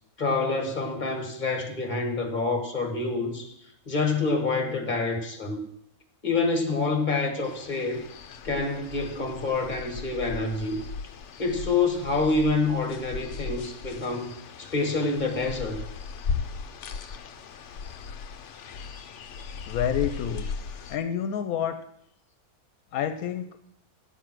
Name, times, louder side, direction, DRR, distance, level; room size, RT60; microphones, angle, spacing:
voice 1, 0.2-3.5 3.9-5.6 6.2-8.0 8.4-10.8 11.4-14.3 14.6-15.8, left 3 dB, 30° left, 4 dB, 1.8 m, -27 dB
sound 1, 7.4-21.0, left 6 dB, 60° left, 0.9 m, -37 dB
voice 2, 19.7-20.5 20.9-21.8 22.9-23.5, left 8 dB, 80° left, 9 dB, 1.1 m, -28 dB
9.9 x 7.1 x 6.1 m, 0.75 s
omnidirectional pair, 1.5 m